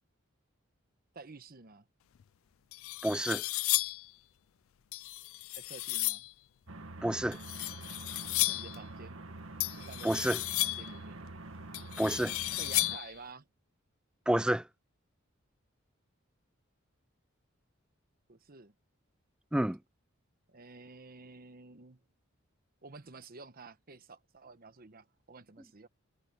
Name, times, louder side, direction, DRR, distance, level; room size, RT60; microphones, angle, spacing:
voice 1, 1.1-1.9 5.6-6.3 8.4-9.2 9.8-10.1 10.6-11.2 12.5-13.5 18.3-18.7 20.5-22.0 22.8-25.9, right 3 dB, 45° right, 1.1 m, -51 dB
sound 1, 2.2-2.3 2.7-4.1 4.9-6.3 7.3-8.8 9.6-11.0 11.7-13.2, left 20 dB, 75° left, 0.4 m, -34 dB
voice 2, 3.0-3.4 7.0-7.4 10.0-10.4 12.0-12.3 14.3-14.6 19.5-19.8, right 1 dB, 5° right, 0.3 m, -29 dB
sound 2, 6.7-13.0, right 2 dB, 80° right, 1.8 m, -46 dB
head